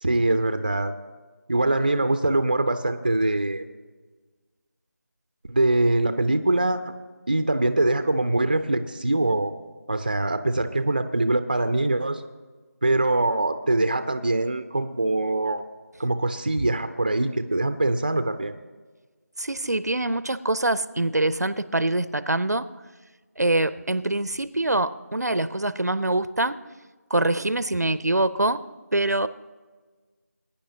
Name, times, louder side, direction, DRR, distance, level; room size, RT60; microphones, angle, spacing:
voice 1, 0.0-0.9 1.5-3.6 5.5-6.8 7.3-9.5 9.9-12.2 12.8-15.6 16.0-18.5, right 2 dB, 30° right, 10 dB, 0.5 m, -23 dB
voice 2, 19.4-22.7 23.4-26.6 27.1-28.6 28.9-29.3, right 2 dB, 75° right, 15 dB, 0.6 m, -24 dB
21.0 x 10.0 x 2.8 m, 1.4 s
figure-of-eight pair, 170°, 9 cm